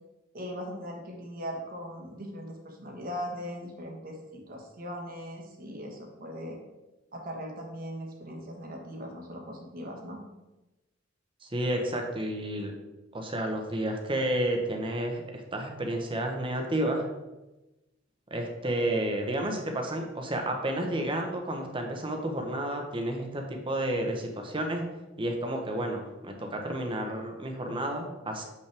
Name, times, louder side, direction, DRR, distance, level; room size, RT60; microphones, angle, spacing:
voice 1, 0.3-6.6 7.1-10.2, equal, 50° right, 1 dB, 1.5 m, -39 dB
voice 2, 11.4-12.7 13.1-17.0 18.3-24.8 25.2-28.4, right 1 dB, 25° right, 3 dB, 1.1 m, -31 dB
7.7 x 5.6 x 3.5 m, 1.0 s
head